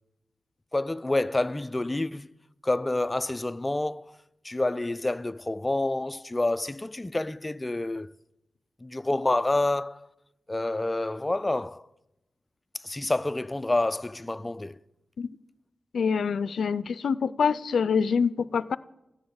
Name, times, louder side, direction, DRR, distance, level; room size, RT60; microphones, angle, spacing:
voice 1, 0.7-2.3 2.6-4.1 4.4-8.1 8.8-10.1 10.5-11.8 12.8-14.8, left 2 dB, 20° left, 0.4 m, -28 dB
voice 2, 15.9-18.8, left 6 dB, 90° left, 0.4 m, -25 dB
14.5 x 6.3 x 9.5 m
wide cardioid pair, 80°, 0 cm